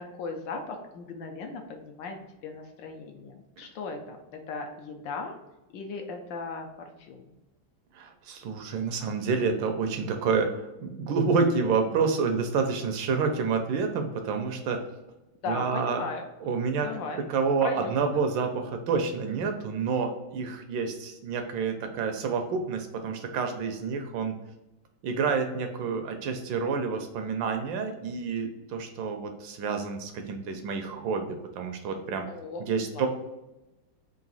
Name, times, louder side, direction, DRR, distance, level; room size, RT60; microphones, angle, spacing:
voice 1, 0.0-5.3 5.7-7.3 15.4-16.3 16.8-17.2 17.6-18.0 32.3-32.6 32.9-33.1, left 4 dB, 75° left, 3 dB, 1.2 m, -37 dB
voice 2, 7.9-14.8 15.5-16.0 16.4-16.9 17.3-24.4 25.0-32.3 32.6-33.1, right 5 dB, 75° right, 6 dB, 1.2 m, -28 dB
3.9 x 2.5 x 3.9 m, 0.98 s
omnidirectional pair, 2.2 m